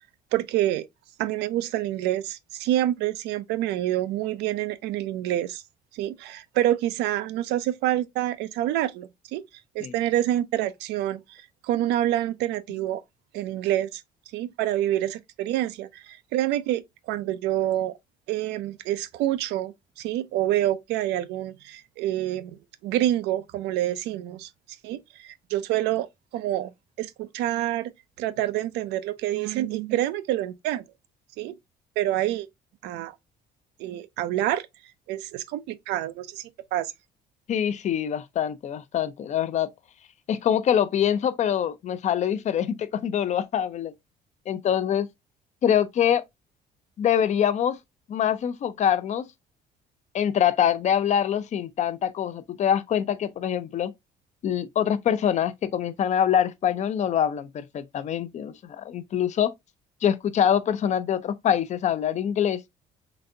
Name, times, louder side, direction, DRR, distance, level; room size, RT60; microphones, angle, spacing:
voice 1, 0.3-0.9 1.2-5.6 5.9-9.4 9.7-13.0 13.3-14.0 14.3-18.0 18.3-24.5 24.8-26.1 26.3-27.9 28.2-30.8 31.4-31.5 32.0-32.5 32.8-33.1 33.8-34.7 35.1-36.9, right 13 dB, 85° right, 0.5 m, -27 dB
voice 2, 37.5-39.7 40.3-43.9 44.5-45.1 45.6-46.2 47.0-47.8 48.1-49.2 50.1-53.9 54.4-59.5 60.0-62.6, left 9 dB, 45° left, 0.5 m, -24 dB
4.0 x 3.3 x 2.6 m
cardioid pair, 110°, 17 cm